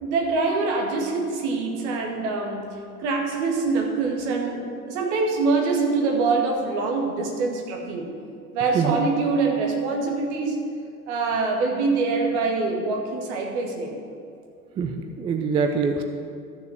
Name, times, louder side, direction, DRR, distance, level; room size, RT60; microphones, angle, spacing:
voice 1, 0.0-8.1 8.5-10.6 11.1-13.9, right 4 dB, 50° right, 1 dB, 2.1 m, -24 dB
voice 2, 14.8-16.0, right 5 dB, 15° right, 6 dB, 0.4 m, -24 dB
13.0 x 6.7 x 6.4 m, 2.4 s
figure-of-eight pair, 80°, 43 cm